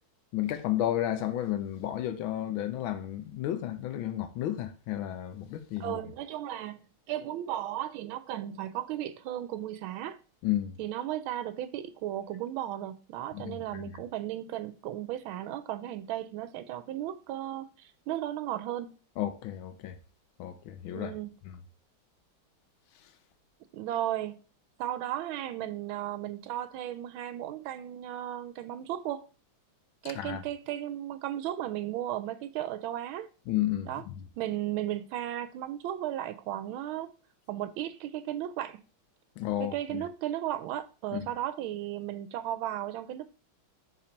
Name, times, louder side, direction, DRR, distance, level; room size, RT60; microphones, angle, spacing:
voice 1, 0.3-6.0 10.4-10.7 13.3-13.8 19.2-20.0 20.4-21.1 21.5-21.6 30.0-30.4 33.5-34.2 39.4-40.0 41.1-41.3, left 12 dB, 75° left, 1.4 m, -32 dB
voice 2, 5.8-10.2 10.8-18.9 20.9-21.3 23.7-24.4 24.8-29.3 30.0-33.3 33.9-34.0 34.4-37.1 37.5-38.8 39.6-43.2, right 12 dB, 80° right, 1.4 m, -35 dB
4.4 x 4.2 x 5.1 m
omnidirectional pair, 2.3 m